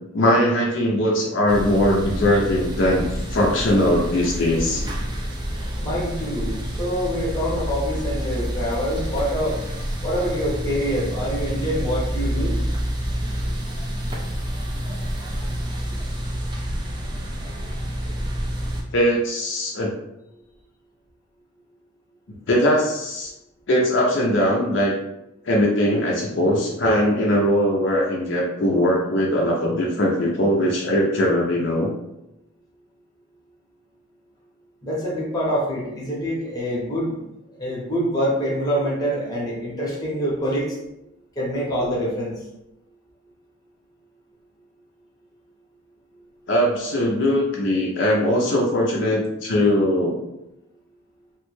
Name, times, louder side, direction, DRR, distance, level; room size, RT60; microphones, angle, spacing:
voice 1, 0.1-3.0 3.3-4.8 18.9-19.9 22.5-23.3 23.7-24.9 25.4-31.9 46.5-50.2, left 1 dB, 55° left, -2 dB, 0.5 m, -20 dB
sound 1, 1.5-18.8, equal, 20° right, 0.3 m, -28 dB
voice 2, 5.8-9.6 10.0-12.6 34.8-37.2 37.6-40.8 41.4-42.4, equal, 20° left, -5 dB, 0.8 m, -25 dB
3.1 x 2.1 x 3.1 m, 0.88 s
head